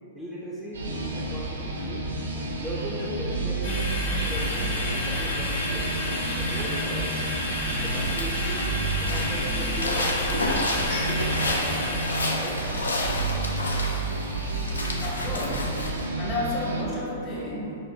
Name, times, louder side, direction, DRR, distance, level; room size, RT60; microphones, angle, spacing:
voice 1, 0.1-2.1 2.5-5.9 6.3-7.2 7.7-10.5 10.8-12.6, equal, 10° left, -7 dB, 0.5 m, -38 dB
sound 1, 0.7-16.8, right 3 dB, 80° right, 0.5 m, -30 dB
sound 2, 3.6-12.2, left 1 dB, 70° left, 1.1 m, -30 dB
sound 3, 7.9-16.0, left 2 dB, 90° left, 0.4 m, -31 dB
voice 2, 15.0-15.8 16.2-17.8, left 1 dB, 30° left, -5 dB, 1.0 m, -31 dB
4.1 x 2.5 x 2.7 m, 2.8 s
hypercardioid pair, 110°, 0 cm